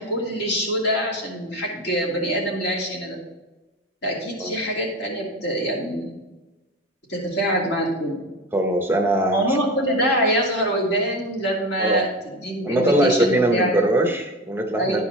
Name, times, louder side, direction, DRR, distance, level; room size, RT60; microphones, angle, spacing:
voice 1, 0.0-3.2 4.0-6.1 7.1-8.2 9.3-12.1 12.4-13.7 14.8-15.0, right 1 dB, 65° left, -3 dB, 2.6 m, -24 dB
voice 2, 8.5-9.6 11.8-12.0 12.6-15.0, right 1 dB, 10° right, 3 dB, 0.7 m, -21 dB
11.0 x 4.8 x 4.2 m, 1.1 s
head